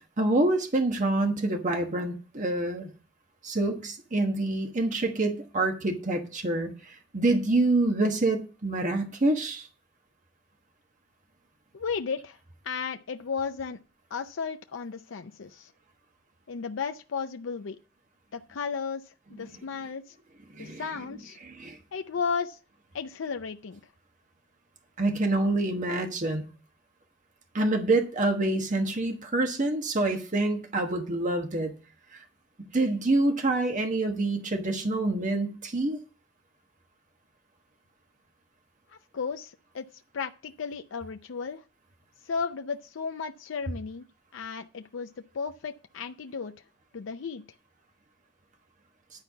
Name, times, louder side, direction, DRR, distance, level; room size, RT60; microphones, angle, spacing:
voice 1, 0.2-2.9 3.4-9.7 20.5-21.8 25.0-26.4 27.5-31.7 32.1-32.2 32.7-36.0, right 2 dB, 40° right, 4 dB, 1.2 m, -27 dB
voice 2, 11.7-12.4 12.6-13.8 14.1-15.7 16.5-17.8 18.3-20.2 20.6-21.4 21.9-22.6 22.9-23.8 39.1-39.9 40.1-41.6 42.2-44.1 44.3-46.5 46.9-47.4, left 5 dB, 80° left, 6 dB, 0.5 m, -34 dB
10.5 x 4.5 x 7.0 m, 0.36 s
head